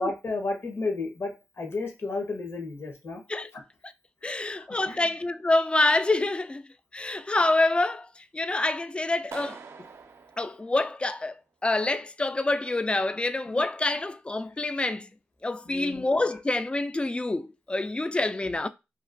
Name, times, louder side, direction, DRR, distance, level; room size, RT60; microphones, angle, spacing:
voice 1, 0.0-3.2 4.3-5.1 15.6-16.1, left 3 dB, 55° left, 1.1 m, -33 dB
voice 2, 4.2-6.6 6.9-8.1 8.3-9.6 10.4-11.3 11.6-15.1 15.4-18.7, left 2 dB, 20° left, 0.4 m, -26 dB
Clapping, 9.3-11.4, right 5 dB, 65° right, 0.5 m, -45 dB
2.9 x 2.4 x 2.5 m
supercardioid pair, 40°, 5 cm